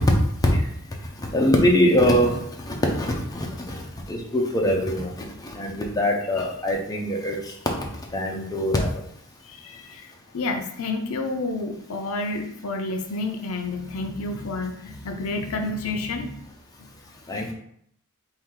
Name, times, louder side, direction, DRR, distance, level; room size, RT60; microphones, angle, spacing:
voice 1, 1.3-2.4 2.7-3.8 4.1-5.1 5.5-7.4 8.1-8.9 17.3-17.5, equal, 15° left, -1 dB, 0.6 m, -22 dB
voice 2, 9.4-16.4 16.8-16.9 17.3-17.4, left 2 dB, 70° left, 5 dB, 0.5 m, -30 dB
4.6 x 2.7 x 3.7 m, 0.69 s
head